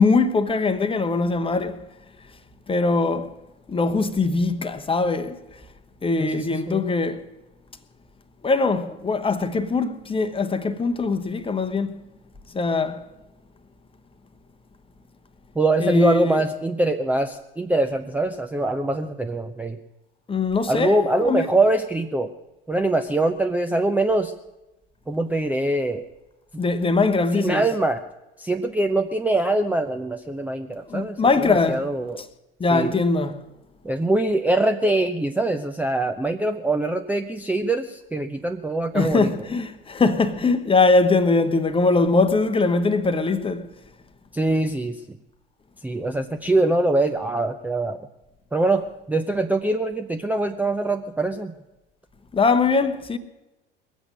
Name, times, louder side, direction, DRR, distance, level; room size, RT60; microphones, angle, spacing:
voice 1, 0.0-1.8 2.7-3.3 3.7-5.4 6.0-7.2 8.4-12.0 12.5-13.0 15.8-16.4 20.3-21.5 26.6-27.6 30.9-31.9 32.6-33.4 38.9-43.7 52.3-53.2, left 3 dB, 20° left, 1.0 m, -21 dB
voice 2, 6.2-6.8 15.6-19.8 20.7-22.3 22.7-24.3 25.1-26.1 27.3-28.0 28.4-32.2 32.7-32.9 33.8-39.3 44.3-45.2 45.8-48.1 48.5-51.5, right 2 dB, 5° right, 0.6 m, -23 dB
21.5 x 8.1 x 6.5 m
figure-of-eight pair, 65°, 30 cm